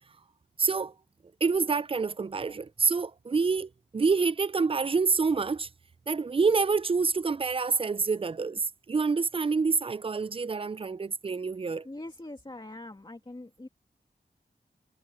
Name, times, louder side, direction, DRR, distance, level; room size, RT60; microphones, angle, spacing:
voice 1, 0.6-0.9 1.4-5.7 6.1-11.9, right 4 dB, 30° right, 0.3 m, -27 dB
voice 2, 11.8-13.7, left 2 dB, 25° left, 2.2 m, -43 dB
wide cardioid pair, 95°, 18 cm